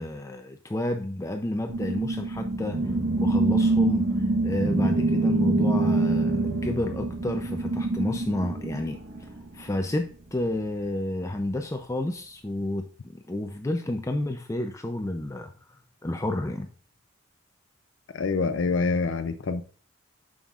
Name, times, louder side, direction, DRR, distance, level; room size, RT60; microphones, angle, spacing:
voice 1, 0.0-2.8 3.2-4.1 4.4-9.0 9.5-15.5 16.0-16.7, left 1 dB, 15° left, 5 dB, 0.4 m, -30 dB
sound 1, 1.7-9.5, right 2 dB, 70° right, 1.2 m, -25 dB
voice 2, 18.1-19.6, left 4 dB, 70° left, 8 dB, 0.5 m, -26 dB
9.0 x 6.4 x 2.4 m, 0.41 s
head